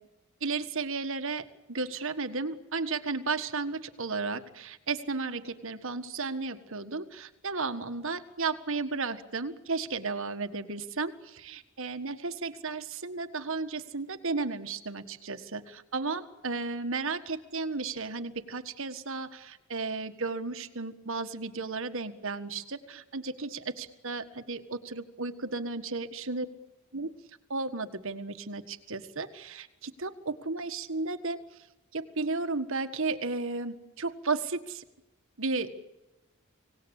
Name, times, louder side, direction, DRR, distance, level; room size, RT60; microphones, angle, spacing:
voice 1, 0.4-26.5 26.9-27.1 27.5-31.4 31.9-34.8 35.4-35.9, right 3 dB, 60° right, 8 dB, 1.6 m, -34 dB
25.5 x 18.5 x 10.0 m, 0.98 s
head